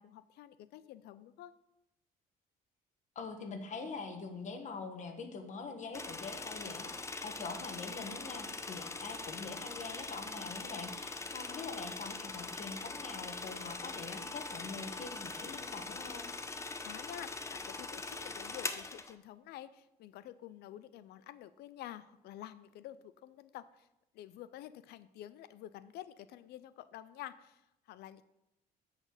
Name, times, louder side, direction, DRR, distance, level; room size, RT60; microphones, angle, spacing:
voice 1, 0.0-1.5 16.5-23.9 24.1-28.2, left 12 dB, 75° left, 15 dB, 0.5 m, -49 dB
voice 2, 3.1-6.9 7.2-16.3, left 4 dB, 45° left, 5 dB, 1.4 m, -44 dB
sound 1, 5.9-19.1, left 3 dB, 15° left, 0.6 m, -42 dB
8.8 x 4.2 x 6.5 m, 0.90 s
cardioid pair, 110°, 17 cm